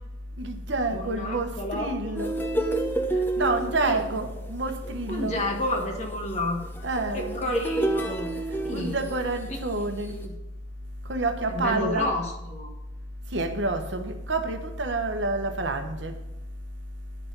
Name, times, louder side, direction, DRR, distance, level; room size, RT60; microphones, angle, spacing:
voice 1, 0.4-2.3 3.4-5.4 6.8-7.5 8.7-10.2 11.1-12.1 13.3-16.1, right 2 dB, 65° right, 1.1 m, -28 dB
voice 2, 0.9-2.2 3.4-4.0 5.1-6.6 7.1-9.0 9.5-10.3 11.5-12.7, left 1 dB, 35° left, 1.5 m, -31 dB
sound 1, 2.1-9.4 10.0-10.2, right 2 dB, 10° left, 0.8 m, -30 dB
10.5 x 5.9 x 5.4 m
head